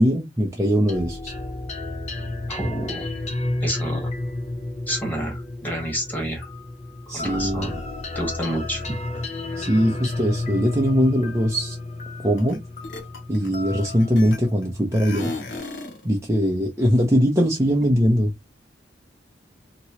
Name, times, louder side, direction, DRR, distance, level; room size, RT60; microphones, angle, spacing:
voice 1, 0.0-1.3 7.1-7.7 9.6-11.8 12.2-12.6 13.3-15.3 16.0-18.3, equal, 15° right, 0.6 m, -21 dB
sound 1, 0.9-15.6, left 2 dB, 40° left, 0.6 m, -32 dB
voice 2, 2.5-3.1 3.6-4.1 4.9-6.5 7.1-7.8 8.1-8.8, equal, 10° left, 1.4 m, -29 dB
sound 2, 12.4-12.6 12.8-14.6 14.9-16.0, left 2 dB, 85° left, 1.0 m, -34 dB
2.9 x 2.9 x 2.8 m
head